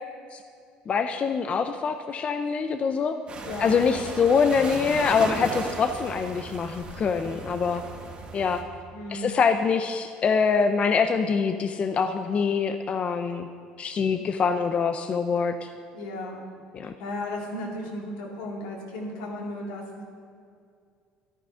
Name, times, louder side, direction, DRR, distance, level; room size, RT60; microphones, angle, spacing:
voice 1, 0.9-3.2 3.6-7.8 8.3-8.6 9.1-13.5 13.8-15.7 16.7-16.9, left 5 dB, 40° left, 8 dB, 0.7 m, -24 dB
sound 1, 3.3-8.6, right 3 dB, 35° right, 2.4 m, -36 dB
voice 2, 3.4-3.8 8.9-9.3 15.9-16.4 16.8-20.0, left 1 dB, 90° left, -1 dB, 3.0 m, -35 dB
13.5 x 11.0 x 5.7 m, 2.3 s
supercardioid pair, 100°, 3 cm